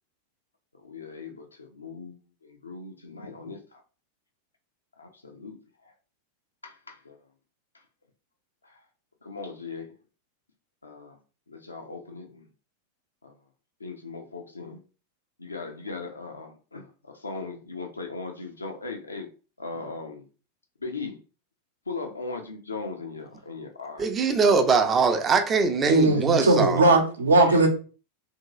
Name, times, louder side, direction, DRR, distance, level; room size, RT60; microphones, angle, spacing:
voice 1, 0.8-3.8 5.0-5.6 5.8-5.9 6.6-7.2 8.6-8.8 9.2-10.0 10.8-11.2 11.5-12.5 13.2-13.3 13.8-14.8 15.4-19.3 19.6-20.2 20.8-21.2 21.9-24.0 25.9-26.2 26.7-26.8 27.4-27.6, left 4 dB, 80° left, 0.6 m, -38 dB
voice 2, 24.0-26.8, right 5 dB, 20° right, 0.5 m, -22 dB
voice 3, 25.9-27.7, right 2 dB, 70° right, 0.7 m, -19 dB
2.9 x 2.7 x 2.7 m
figure-of-eight pair, 90°, 0 cm